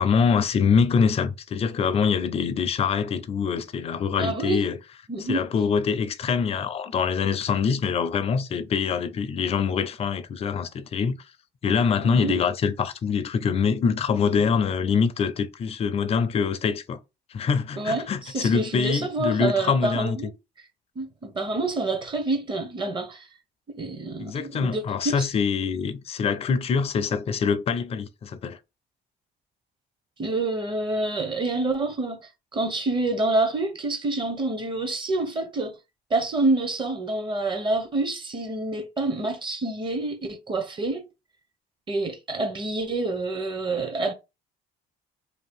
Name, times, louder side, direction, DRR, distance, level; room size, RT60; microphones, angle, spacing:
voice 1, 0.0-4.8 5.3-11.2 11.6-17.0 17.3-20.2 24.2-28.6, left 6 dB, 35° left, 0.4 m, -24 dB
voice 2, 4.2-4.6 5.1-5.4 12.0-12.4 17.8-20.3 21.0-23.3 23.7-25.3 30.2-35.8 36.1-41.1 41.9-44.1, right 2 dB, 30° right, 0.6 m, -27 dB
2.7 x 2.3 x 3.5 m
cardioid pair, 110°, 17 cm